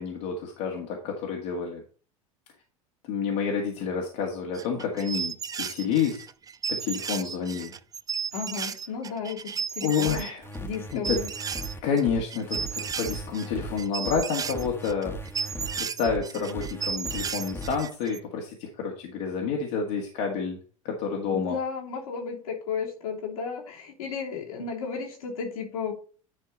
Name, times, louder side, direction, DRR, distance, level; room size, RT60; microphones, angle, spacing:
voice 1, 0.0-1.8 3.1-5.3 5.6-6.3 6.7-7.7 9.8-10.5 10.9-11.2 11.8-15.1 15.8-20.6 20.8-21.6, left 6 dB, 60° left, 0 dB, 1.8 m, -29 dB
sound 1, 4.5-10.3 10.5-12.0 12.3-18.2, right 6 dB, 20° right, 0.5 m, -34 dB
voice 2, 8.3-10.3 10.6-11.3 21.3-25.9, left 6 dB, 75° left, -2 dB, 3.1 m, -34 dB
sound 2, 10.0-17.8, equal, 15° left, 1.4 m, -38 dB
10.5 x 4.6 x 4.0 m, 0.40 s
hypercardioid pair, 75°, 18 cm